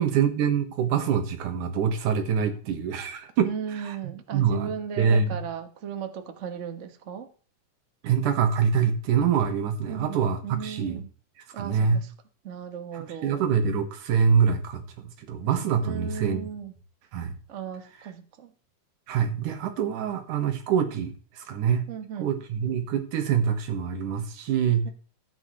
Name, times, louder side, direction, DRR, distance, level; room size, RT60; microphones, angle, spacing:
voice 1, 0.0-3.5 3.8-4.0 4.3-4.7 5.0-5.4 8.0-11.0 11.6-12.0 12.9-16.5 17.1-17.4 19.1-21.9 22.2-24.9, right 7 dB, 90° right, 7 dB, 2.9 m, -25 dB
voice 2, 3.4-7.3 9.9-10.2 10.4-11.1 11.5-12.1 12.4-13.4 15.8-16.7 17.5-18.5 21.9-22.3 24.8-24.9, right 7 dB, 55° right, 8 dB, 0.7 m, -36 dB
14.5 x 9.1 x 3.2 m, 0.41 s
omnidirectional pair, 3.5 m